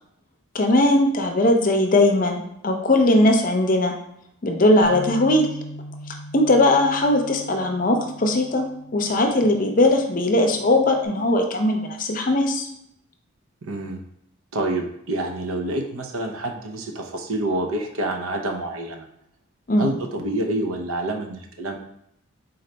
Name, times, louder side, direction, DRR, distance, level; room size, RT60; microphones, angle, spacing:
voice 1, 0.5-3.9 4.4-5.5 6.3-8.6 8.9-12.7 19.7-19.9, left 1 dB, 40° left, 4 dB, 0.5 m, -19 dB
Bass guitar, 4.8-11.1, equal, 30° right, 0.9 m, -41 dB
voice 2, 13.7-14.0 14.5-19.1 19.8-21.8, right 1 dB, 80° right, 3 dB, 0.7 m, -27 dB
4.1 x 3.9 x 3.3 m, 0.75 s
head